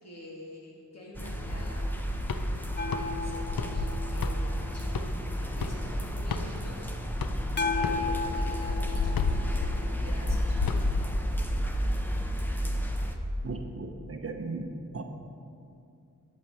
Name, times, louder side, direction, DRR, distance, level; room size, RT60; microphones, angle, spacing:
voice 1, 0.0-1.9 2.8-5.2 5.5-6.9 7.7-10.9, left 1 dB, 50° left, -3 dB, 2.1 m, -47 dB
sound 1, 1.1-13.2, equal, 5° left, 0.8 m, -32 dB
sound 2, 1.8-6.8 7.2-11.0, left 5 dB, 90° left, 0.5 m, -33 dB
sound 3, 2.8-5.6 7.6-10.8 13.6-13.7, left 4 dB, 35° left, 0.4 m, -36 dB
voice 2, 13.4-14.7 14.9-15.0, right 3 dB, 45° right, 4 dB, 0.8 m, -36 dB
11.0 x 7.4 x 4.3 m, 2.4 s
wide cardioid pair, 60°, 34 cm